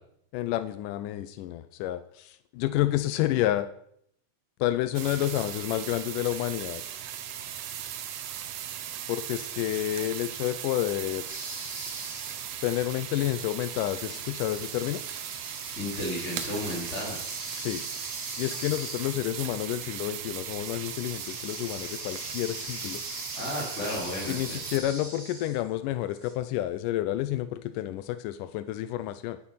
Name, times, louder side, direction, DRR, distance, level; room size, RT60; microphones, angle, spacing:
voice 1, 0.3-3.7 4.6-6.8 9.1-11.3 12.6-15.0 17.5-17.8 18.4-23.0 24.3-29.4, left 14 dB, 85° left, 12 dB, 2.2 m, -30 dB
sound 1, 4.9-24.8, right 10 dB, 65° right, 1.9 m, -38 dB
sound 2, 11.3-12.6 13.4-25.7 26.2-26.3, right 1 dB, 25° right, 3.2 m, -42 dB
voice 2, 15.7-17.2 23.3-24.6, left 1 dB, 20° left, -7 dB, 4.0 m, -33 dB
10.5 x 10.0 x 5.7 m, 0.70 s
omnidirectional pair, 3.7 m